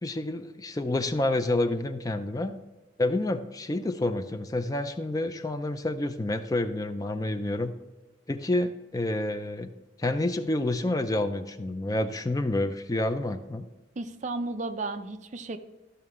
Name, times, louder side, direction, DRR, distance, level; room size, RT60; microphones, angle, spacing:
voice 1, 0.0-2.5 3.0-7.7 8.3-9.7 10.0-13.7, left 2 dB, 20° left, 8 dB, 0.4 m, -28 dB
voice 2, 14.0-15.6, right 3 dB, 40° right, 9 dB, 0.5 m, -33 dB
12.5 x 5.7 x 3.6 m, 1.1 s
head